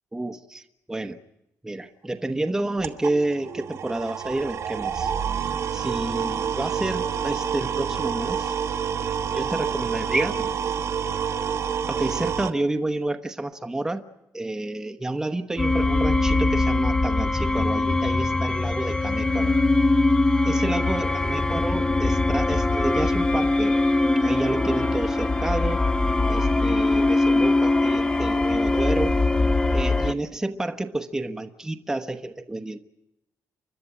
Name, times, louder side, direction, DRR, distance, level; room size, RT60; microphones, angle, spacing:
voice 1, 0.1-1.2 1.6-5.1 5.7-8.5 9.0-10.5 11.9-14.0 14.3-19.5 20.4-23.8 24.2-25.8 26.3-29.1 29.7-32.8, right 2 dB, 10° right, 5 dB, 1.0 m, -29 dB
sound 1, 2.6-12.5, right 7 dB, 55° right, 1.2 m, -28 dB
sound 2, 15.6-30.1, left 2 dB, 15° left, 0.8 m, -22 dB
29.5 x 12.5 x 10.0 m, 0.88 s
cardioid pair, 155°, 6 cm